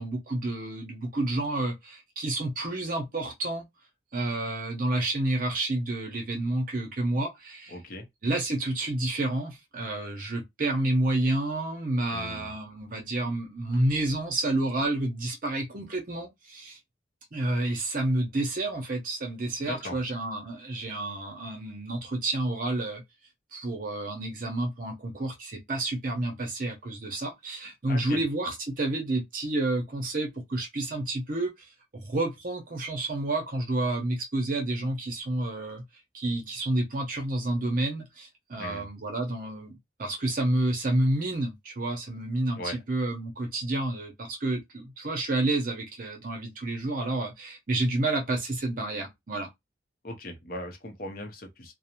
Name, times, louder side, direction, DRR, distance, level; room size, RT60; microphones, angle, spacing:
voice 1, 0.0-3.6 4.1-7.8 8.2-16.8 17.3-23.0 23.5-31.7 31.9-35.8 36.1-39.7 40.0-49.5, right 2 dB, 45° right, 0.6 m, -29 dB
voice 2, 7.7-8.1 12.1-12.5 19.6-20.0 27.9-28.2 38.6-38.9 42.6-42.8 50.0-51.7, left 1 dB, 50° left, 0.7 m, -38 dB
2.5 x 2.0 x 2.9 m
head